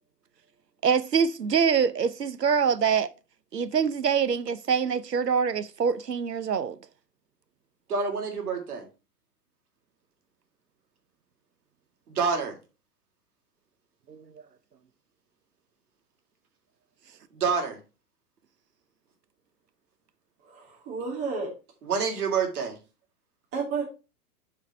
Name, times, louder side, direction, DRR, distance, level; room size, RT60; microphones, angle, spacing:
voice 1, 0.8-3.1 3.5-6.8 14.1-14.2, right 6 dB, 85° right, 0.9 m, -25 dB
voice 2, 7.9-8.8 12.1-12.5 17.3-17.8 21.9-22.8, right 5 dB, 65° right, 2.9 m, -27 dB
voice 3, 20.4-21.5 23.5-23.9, right 4 dB, 30° right, 2.8 m, -31 dB
8.6 x 4.9 x 4.4 m
figure-of-eight pair, 105°, 47 cm